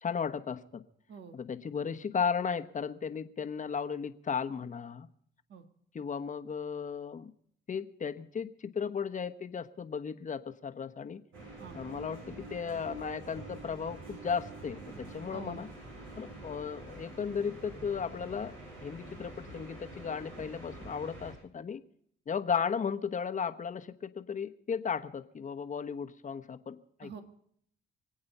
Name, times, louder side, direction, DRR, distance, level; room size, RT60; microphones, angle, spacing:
voice 1, 0.0-0.8 1.3-5.1 5.9-7.3 7.7-11.2 11.7-15.7 16.2-18.5 18.8-21.8 22.3-27.1, left 6 dB, 40° left, 8 dB, 1.2 m, -35 dB
sound 1, 11.3-21.3, right 2 dB, 80° right, 7.9 m, -46 dB
voice 2, 15.3-15.6 27.0-27.2, right 6 dB, 60° right, 7 dB, 1.8 m, -45 dB
25.5 x 8.7 x 5.5 m, 0.67 s
cardioid pair, 90°, 20 cm